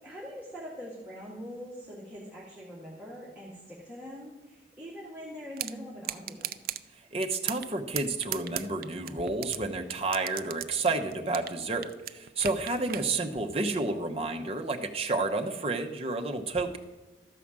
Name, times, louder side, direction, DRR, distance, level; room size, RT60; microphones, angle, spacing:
voice 1, 0.0-6.5, equal, 5° right, -7 dB, 2.1 m, -43 dB
sound 1, 5.6-5.7 6.0-6.8 7.2-7.7 8.0-9.6 9.9-11.6 11.8-13.1, right 12 dB, 50° right, 0.4 m, -35 dB
voice 2, 7.1-16.8, right 3 dB, 35° right, 4 dB, 0.8 m, -30 dB
13.0 x 4.9 x 7.3 m, 1.2 s
head